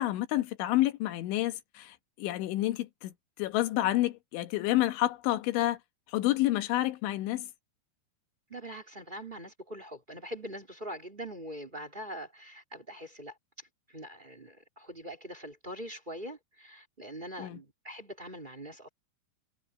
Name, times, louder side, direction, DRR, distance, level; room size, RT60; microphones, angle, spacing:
voice 1, 0.0-3.1 3.4-5.8 6.1-7.5 17.4-17.6, left 16 dB, 80° left, 3.7 m, -29 dB
voice 2, 8.5-18.9, equal, 15° right, 2.5 m, -43 dB
omnidirectional pair, 5.4 m